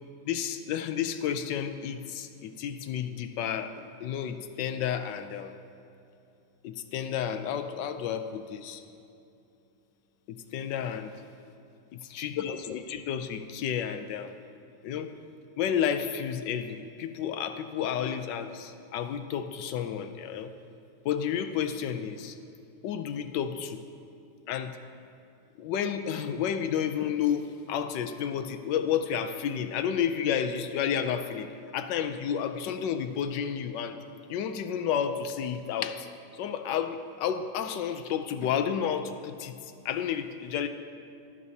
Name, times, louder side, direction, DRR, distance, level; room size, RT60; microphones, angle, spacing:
voice 1, 0.2-5.5 6.6-8.8 10.3-11.2 12.1-14.4 14.8-15.1 15.6-20.5 21.0-22.4 22.8-23.8 24.5-24.8 25.6-34.0 34.3-36.1 36.3-39.5 39.8-40.7, left 8 dB, 85° left, 8 dB, 1.3 m, -31 dB
22.0 x 7.7 x 2.7 m, 2.7 s
omnidirectional pair, 1.9 m